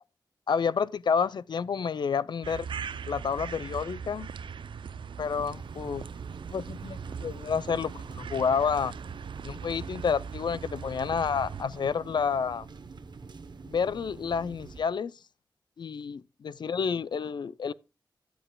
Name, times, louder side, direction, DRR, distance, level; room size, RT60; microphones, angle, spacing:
voice 1, 0.5-2.7 3.1-4.3 5.2-6.0 6.5-8.9 9.4-12.7 13.6-15.1 15.8-17.7, left 6 dB, 65° left, 0.3 m, -29 dB
sound 1, 2.4-11.6, right 6 dB, 85° right, 0.4 m, -40 dB
sound 2, 5.2-14.8, right 4 dB, 65° right, 0.8 m, -46 dB
10.0 x 9.7 x 2.2 m
wide cardioid pair, 85°, 8 cm